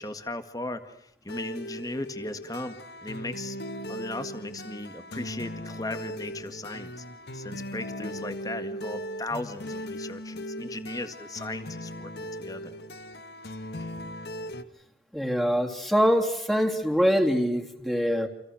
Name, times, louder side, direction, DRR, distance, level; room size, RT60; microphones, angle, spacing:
voice 1, 0.0-3.6 3.9-7.0 7.3-12.7 13.7-13.9, left 2 dB, 20° left, 9 dB, 1.9 m, -37 dB
sound 1, 1.3-14.6, equal, 65° left, 1.6 m, -38 dB
voice 2, 15.1-18.3, equal, ahead, 2 dB, 3.3 m, -24 dB
29.5 x 28.5 x 6.5 m, 0.81 s
head